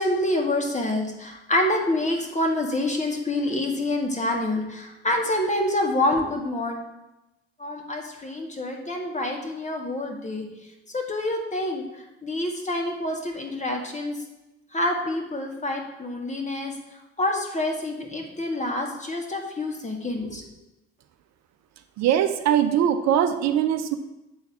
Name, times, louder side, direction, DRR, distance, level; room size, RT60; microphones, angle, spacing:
voice 1, 0.0-6.8 7.6-10.5 10.9-11.8 12.2-14.1 14.7-16.7 17.2-20.4, left 1 dB, 20° left, 2 dB, 2.0 m, -27 dB
voice 2, 22.0-24.0, right 10 dB, 55° right, 9 dB, 0.6 m, -21 dB
8.2 x 4.1 x 6.8 m, 0.96 s
hypercardioid pair, 50°, 32 cm